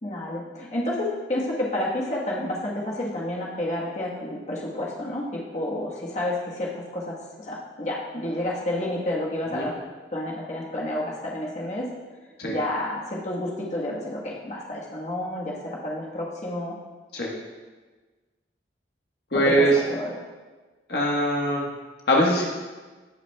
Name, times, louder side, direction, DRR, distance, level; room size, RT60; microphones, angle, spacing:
voice 1, 0.0-9.8 10.1-11.9 12.5-16.8 19.3-20.2, left 1 dB, 40° left, -4 dB, 1.4 m, -30 dB
voice 2, 19.3-19.8 20.9-21.7 22.1-22.4, equal, 60° left, -2 dB, 1.4 m, -21 dB
17.5 x 5.8 x 2.3 m, 1.3 s
head